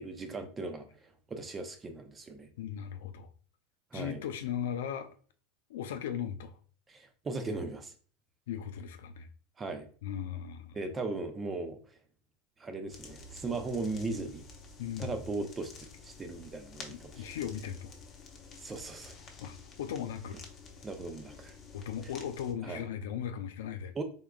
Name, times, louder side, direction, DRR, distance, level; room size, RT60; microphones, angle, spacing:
voice 1, 0.0-2.5 3.9-4.2 6.9-7.9 9.6-9.9 10.7-11.8 12.6-14.4 15.0-17.2 18.6-19.2 20.8-21.6 22.6-22.8 23.9-24.0, right 3 dB, 20° right, 0.6 m, -38 dB
voice 2, 2.6-3.3 3.9-5.1 5.7-6.5 8.5-9.3 10.0-10.8 14.8-15.1 17.1-17.9 19.4-20.4 21.7-23.9, left 9 dB, 80° left, 0.4 m, -37 dB
sound 1, 12.9-22.5, left 4 dB, 30° left, 0.8 m, -50 dB
3.6 x 3.6 x 2.3 m
supercardioid pair, 120°, 0 cm